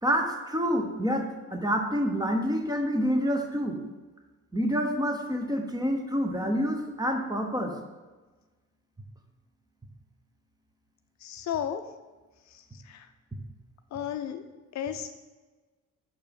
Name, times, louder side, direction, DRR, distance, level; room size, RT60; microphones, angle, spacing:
voice 1, 0.0-3.8 4.5-7.8, equal, 15° right, 3 dB, 0.9 m, -27 dB
voice 2, 11.2-11.8 12.5-13.1 13.9-14.4 14.7-15.1, left 9 dB, 65° left, 8 dB, 0.6 m, -34 dB
5.9 x 4.4 x 5.3 m, 1.2 s
cardioid pair, 90°, 30 cm